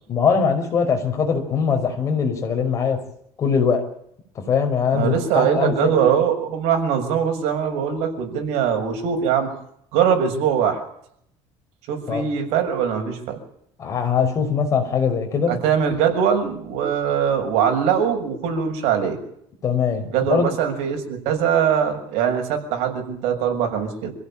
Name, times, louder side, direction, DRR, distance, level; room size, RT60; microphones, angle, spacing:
voice 1, 0.1-3.0 3.4-3.8 4.4-5.9 12.1-12.2 13.8-15.5 19.6-20.5, left 6 dB, 30° left, 5 dB, 5.2 m, -21 dB
voice 2, 4.9-9.5 9.9-10.8 11.9-13.4 15.5-19.2 20.0-24.1, right 8 dB, 80° right, 4 dB, 6.6 m, -22 dB
27.0 x 16.0 x 8.8 m, 0.71 s
cardioid pair, 175°, 11 cm